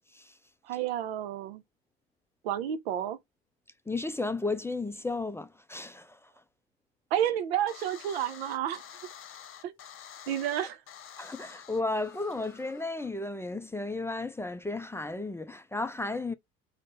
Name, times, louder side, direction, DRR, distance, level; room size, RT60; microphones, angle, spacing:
voice 1, 0.6-1.6 2.4-3.2 7.1-8.8 9.6-9.7 10.3-10.8, right 10 dB, 85° right, 0.7 m, -30 dB
voice 2, 3.9-6.3 11.2-16.3, left 2 dB, 10° left, 0.4 m, -34 dB
sound 1, 7.7-13.1, left 9 dB, 40° left, 0.9 m, -49 dB
3.7 x 2.2 x 4.0 m
hypercardioid pair, 75°, 31 cm